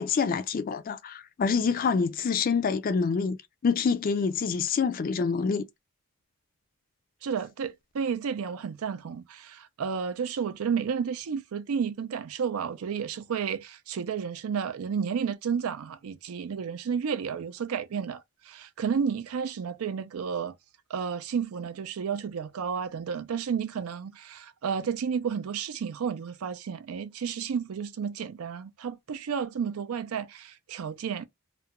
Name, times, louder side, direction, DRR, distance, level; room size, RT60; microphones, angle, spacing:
voice 1, 0.0-3.4 3.6-5.7, left 5 dB, 40° left, 0.3 m, -26 dB
voice 2, 7.2-20.6 20.9-31.3, right 6 dB, 80° right, 0.4 m, -32 dB
2.4 x 2.1 x 2.8 m
head